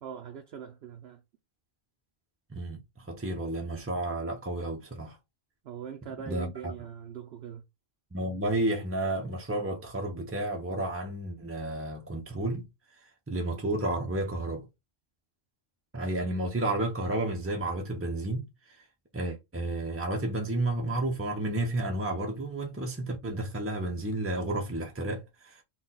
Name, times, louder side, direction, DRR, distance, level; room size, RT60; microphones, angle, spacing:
voice 1, 0.0-1.2 5.6-7.6, right 8 dB, 60° right, 0.8 m, -42 dB
voice 2, 2.5-5.2 6.3-6.7 8.1-12.7 13.3-14.7 15.9-18.4 19.1-25.6, right 1 dB, 20° right, 0.4 m, -31 dB
4.2 x 2.3 x 3.9 m
omnidirectional pair, 1.3 m